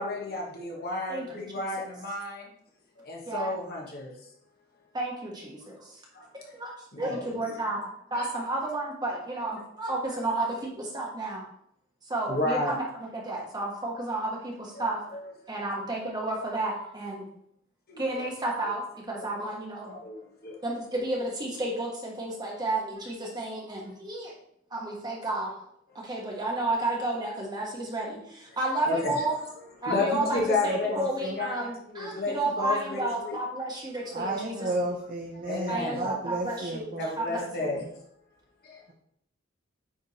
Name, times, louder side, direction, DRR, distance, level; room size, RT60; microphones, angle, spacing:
voice 1, 0.0-2.5 3.0-4.1 6.1-6.3 6.9-7.3 8.2-8.3 12.3-12.7 14.7-15.3 17.9-18.3 19.2-19.3 19.8-20.6 28.9-29.3 29.6-30.9 31.4-31.5 31.9-33.4 35.4-36.0 37.0-37.8 38.6-38.8, left 2 dB, 50° left, -1 dB, 1.5 m, -32 dB
voice 2, 1.1-1.4 1.8-1.9 3.3-3.5 4.9-6.0 6.5-6.7 7.0-11.4 12.0-12.8 13.1-15.0 15.5-17.2 18.0-19.9 20.6-24.3 24.7-25.6 26.0-29.4 29.8-34.7 35.7-37.7, right 2 dB, 20° right, -2 dB, 1.3 m, -32 dB
voice 3, 30.1-31.4 34.1-37.1 37.6-37.9, right 1 dB, 45° right, 0 dB, 0.9 m, -33 dB
8.8 x 3.6 x 4.2 m, 0.72 s
head